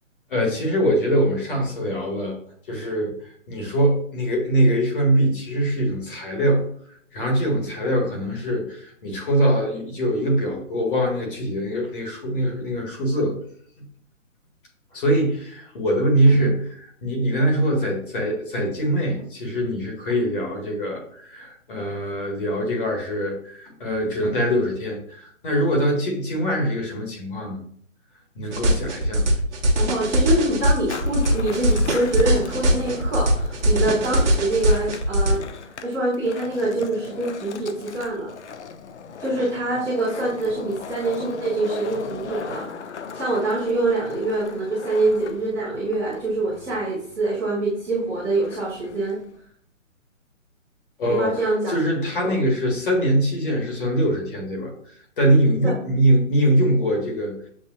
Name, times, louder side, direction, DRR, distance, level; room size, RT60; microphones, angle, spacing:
voice 1, 0.3-2.4 2.7-3.2 3.5-6.6 7.1-13.4 14.9-27.6 28.3-29.3 51.0-54.7 55.2-57.4, right 1 dB, 40° left, 1 dB, 1.4 m, -23 dB
sound 1, 28.5-35.3, equal, 55° right, 1.2 m, -21 dB
voice 2, 29.7-35.4 35.8-38.3 39.2-49.2 51.1-51.7 52.1-52.3 55.6-55.7, right 2 dB, 5° right, -13 dB, 0.9 m, -25 dB
Skateboard, 30.7-49.4, left 6 dB, 60° left, 0.6 m, -38 dB
7.3 x 2.5 x 2.4 m, 0.63 s
hypercardioid pair, 160°, 40 cm